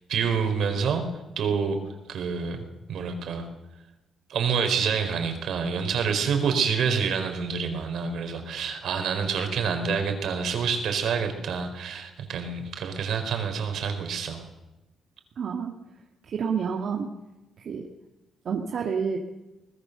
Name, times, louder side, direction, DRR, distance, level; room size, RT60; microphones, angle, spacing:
voice 1, 0.1-1.1 1.4-1.8 2.1-3.5 4.3-14.4, right 6 dB, 70° right, 6 dB, 4.2 m, -27 dB
voice 2, 15.4-15.7 16.2-17.1 17.6-17.8 18.5-19.2, right 6 dB, 55° right, 2 dB, 2.0 m, -29 dB
23.5 x 19.5 x 6.8 m, 1.0 s
cardioid pair, 120°, 0 cm